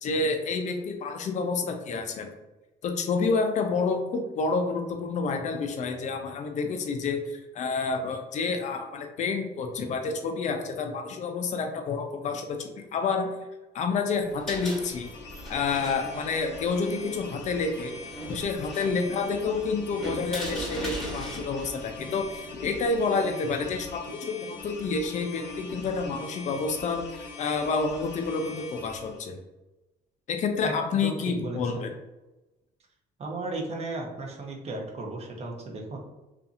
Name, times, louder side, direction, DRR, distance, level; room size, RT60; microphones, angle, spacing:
voice 1, 0.0-2.3 2.8-13.3 13.7-15.1 15.5-17.9 18.3-29.4 30.3-31.9, left 4 dB, 45° left, 5 dB, 0.5 m, -29 dB
sound 1, 14.2-22.9, equal, 5° left, 1.3 m, -40 dB
sound 2, 14.4-29.2, left 3 dB, 85° left, 0.6 m, -43 dB
voice 2, 30.6-31.9 33.2-36.0, right 2 dB, 40° right, -1 dB, 0.7 m, -35 dB
2.7 x 2.5 x 2.4 m, 1.0 s
cardioid pair, 110°, 17 cm